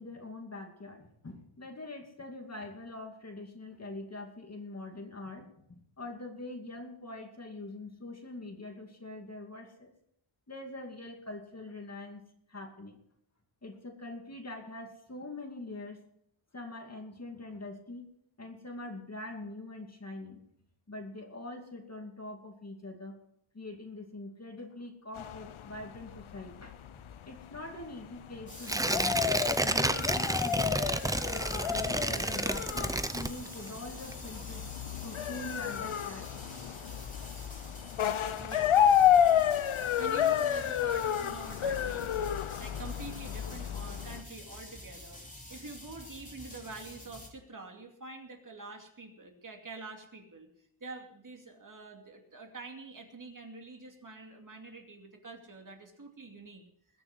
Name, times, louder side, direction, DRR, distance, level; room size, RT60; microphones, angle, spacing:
voice 1, 0.0-9.9 10.5-13.0 13.6-16.0 16.5-18.1 18.4-20.5 20.9-23.2 23.5-29.2 29.6-31.0 31.3-34.6 35.0-36.3, left 2 dB, 30° left, 3 dB, 2.5 m, -44 dB
sound 1, 25.1-44.2, left 9 dB, 75° left, 0.8 m, -31 dB
sound 2, 28.5-47.3, left 1 dB, 15° left, 3.0 m, -48 dB
Tearing, 28.6-33.8 34.1-34.2, right 1 dB, 10° right, 0.6 m, -30 dB
voice 2, 38.4-38.8 40.0-56.6, right 3 dB, 40° right, 2 dB, 2.6 m, -47 dB
20.5 x 6.9 x 6.2 m, 0.72 s
wide cardioid pair, 90°, 49 cm